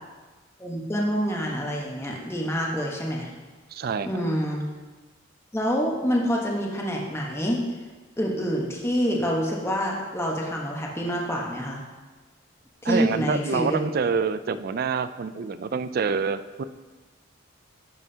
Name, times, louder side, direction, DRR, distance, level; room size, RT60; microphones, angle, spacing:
voice 1, 0.6-3.3 4.0-4.7 5.5-7.6 8.2-11.8 12.8-13.8, equal, 15° left, -2 dB, 1.1 m, -27 dB
voice 2, 3.7-4.1 12.8-16.6, right 5 dB, 50° right, 13 dB, 0.3 m, -26 dB
11.0 x 7.3 x 2.8 m, 1.3 s
head